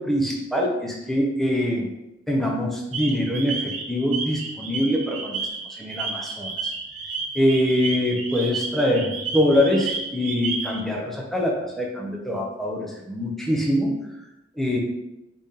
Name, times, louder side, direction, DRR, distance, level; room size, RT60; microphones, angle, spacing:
voice 1, 0.0-1.9 2.3-5.4 5.8-6.7 7.3-14.0 14.6-14.8, left 1 dB, ahead, -2 dB, 0.7 m, -24 dB
sound 1, 2.9-10.8, right 4 dB, 80° right, 0.8 m, -32 dB
4.2 x 3.4 x 3.6 m, 0.91 s
head